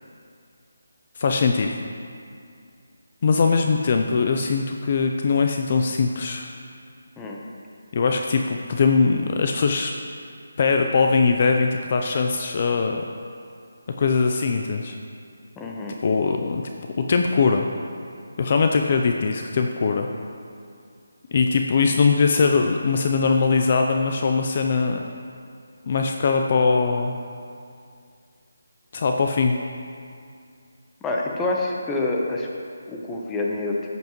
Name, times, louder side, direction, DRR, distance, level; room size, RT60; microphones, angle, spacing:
voice 1, 1.2-1.7 3.2-6.5 7.9-9.9 10.6-13.0 14.0-15.0 16.0-16.6 17.0-17.7 18.4-20.1 21.3-25.0 25.9-27.1 28.9-29.6, left 4 dB, 40° left, 3 dB, 0.5 m, -21 dB
voice 2, 15.6-16.0 31.0-32.5 32.9-33.8, left 2 dB, 10° left, -2 dB, 0.9 m, -27 dB
12.5 x 8.0 x 3.1 m, 2.3 s
figure-of-eight pair, 160°, 0 cm